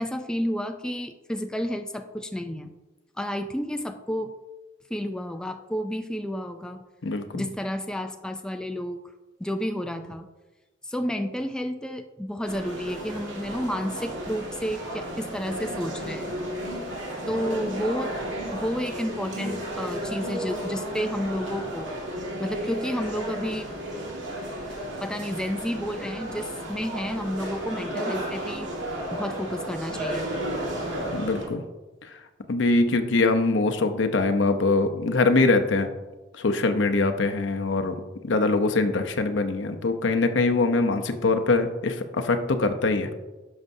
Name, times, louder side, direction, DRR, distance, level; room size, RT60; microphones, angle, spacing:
voice 1, 0.0-2.7 3.2-4.3 4.9-6.9 7.3-9.0 9.4-10.3 10.8-16.4 17.3-18.1 18.5-21.9 22.4-23.7 25.0-28.7 29.1-30.4, equal, 5° left, 6 dB, 0.3 m, -31 dB
voice 2, 7.0-7.5 31.1-31.6 32.0-32.2 32.5-35.9 36.3-38.0 38.2-43.1, left 3 dB, 75° left, 7 dB, 0.7 m, -23 dB
sound 1, 12.4-31.5, right 1 dB, 85° right, 1.9 m, -33 dB
11.0 x 6.4 x 2.7 m, 1.1 s
head